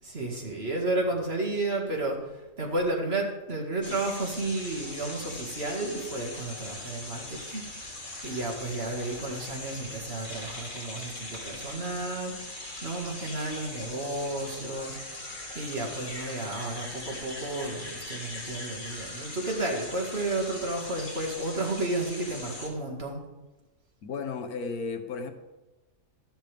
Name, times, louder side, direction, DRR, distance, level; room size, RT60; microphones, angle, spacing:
voice 1, 0.0-15.3 15.5-23.2, right 2 dB, 40° right, 0 dB, 2.2 m, -32 dB
sound 1, 3.8-22.7, left 2 dB, 35° left, 1.9 m, -40 dB
voice 2, 24.0-25.3, left 4 dB, 75° left, 6 dB, 1.5 m, -34 dB
13.5 x 11.5 x 3.5 m, 1.1 s
omnidirectional pair, 1.6 m